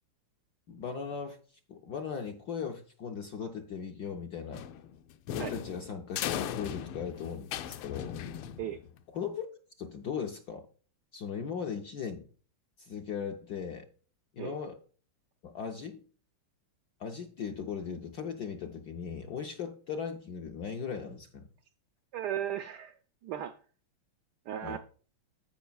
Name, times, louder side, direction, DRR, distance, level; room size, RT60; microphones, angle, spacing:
voice 1, 0.7-1.4 1.7-4.7 5.3-8.2 9.1-9.5 9.8-10.7 11.1-12.2 12.8-13.9 14.3-14.8 15.4-16.0 17.0-21.5 24.6-24.8, left 6 dB, 70° left, 4 dB, 0.9 m, -38 dB
sound 1, 4.5-9.0, left 10 dB, 85° left, 1.5 m, -37 dB
voice 2, 22.1-23.0 23.2-23.6 24.5-24.8, right 10 dB, 85° right, 8 dB, 0.9 m, -36 dB
14.5 x 5.5 x 2.3 m, 0.41 s
omnidirectional pair, 2.3 m